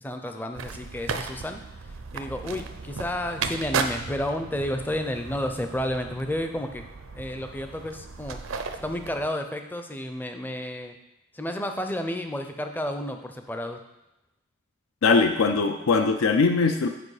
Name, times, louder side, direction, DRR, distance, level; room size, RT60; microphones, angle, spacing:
voice 1, 0.0-6.8 7.1-8.4 8.8-10.9 11.3-13.8, left 1 dB, 10° left, 6 dB, 0.5 m, -31 dB
sound 1, 0.5-9.3, right 5 dB, 85° right, 0.6 m, -35 dB
voice 2, 15.0-16.9, left 4 dB, 85° left, 6 dB, 0.5 m, -21 dB
7.7 x 4.6 x 4.8 m, 0.91 s
head